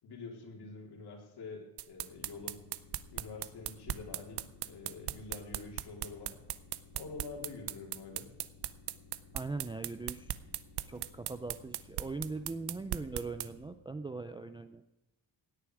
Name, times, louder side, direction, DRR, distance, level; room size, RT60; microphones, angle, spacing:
voice 1, 0.0-2.6 3.1-6.3 6.9-8.3, left 4 dB, 60° left, 0 dB, 4.0 m, -46 dB
sound 1, 1.8-13.5, right 14 dB, 60° right, 0.7 m, -38 dB
sound 2, 2.1-13.7, left 5 dB, 80° left, 3.2 m, -58 dB
voice 2, 9.3-10.6 10.9-14.8, right 3 dB, 10° right, 9 dB, 0.4 m, -40 dB
17.0 x 9.3 x 4.9 m, 0.99 s
cardioid pair, 140°, 46 cm